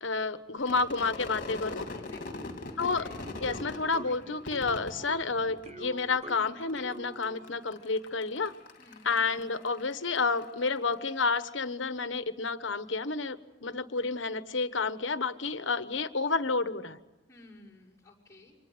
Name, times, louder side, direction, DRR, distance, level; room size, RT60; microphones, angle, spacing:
voice 1, 0.0-1.9 2.8-3.1 3.4-8.5 9.0-17.0, left 4 dB, 75° left, 12 dB, 1.3 m, -30 dB
Crowd / Fireworks, 0.6-6.0 6.3-6.9 7.2-10.8, left 2 dB, 45° left, 3.0 m, -42 dB
voice 2, 1.9-3.0 8.8-9.1 17.3-18.6, left 2 dB, 15° left, -5 dB, 6.0 m, -55 dB
sound 1, 2.8-7.6, right 2 dB, 35° right, 1.0 m, -45 dB
29.5 x 25.5 x 8.0 m, 0.97 s
head